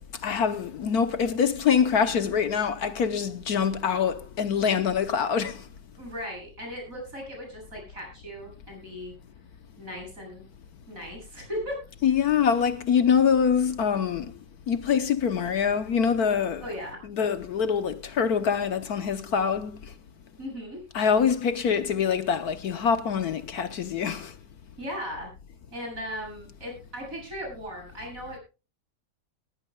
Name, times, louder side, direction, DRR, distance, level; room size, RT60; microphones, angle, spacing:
voice 1, 0.2-5.6 12.0-14.3 14.7-16.7 17.0-19.8 20.9-24.3, left 7 dB, 65° left, 1.3 m, -24 dB
voice 2, 6.0-9.1 9.8-10.4 10.9-11.8 16.6-17.0 20.4-20.8 24.8-25.3 25.7-28.4, equal, 50° right, 8.6 m, -37 dB
19.5 x 15.5 x 2.3 m
omnidirectional pair, 1.8 m